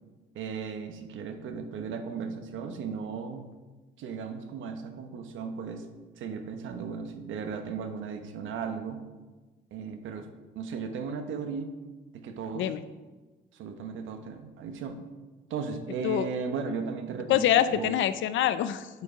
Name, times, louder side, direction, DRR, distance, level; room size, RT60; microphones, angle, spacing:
voice 1, 0.3-3.4 4.0-5.9 6.2-9.0 9.7-10.3 10.6-11.7 12.1-12.7 13.5-15.0 15.5-18.0, right 5 dB, 80° right, 6 dB, 0.9 m, -36 dB
voice 2, 17.3-19.0, left 11 dB, 75° left, 14 dB, 0.5 m, -25 dB
8.3 x 4.6 x 4.8 m, 1.3 s
cardioid pair, 90°, 20 cm